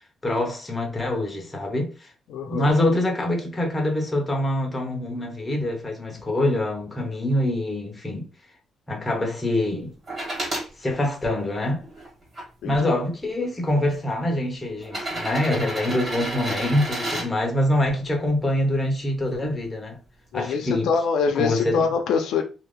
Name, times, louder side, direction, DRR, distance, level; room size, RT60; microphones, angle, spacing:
voice 1, 0.2-2.1 2.5-8.3 8.9-9.9 10.8-11.8 12.6-20.0 20.3-20.9 21.4-21.8, left 1 dB, 15° left, 0.7 m, -25 dB
voice 2, 2.3-2.7 12.6-13.0 20.3-22.4, left 5 dB, 85° left, 0.6 m, -24 dB
sound 1, 10.1-10.7 11.4-12.4 13.4-13.5 14.8-17.3 19.1-19.2, right 1 dB, 30° right, 1.4 m, -31 dB
2.8 x 2.5 x 3.4 m
cardioid pair, 160°, 0 cm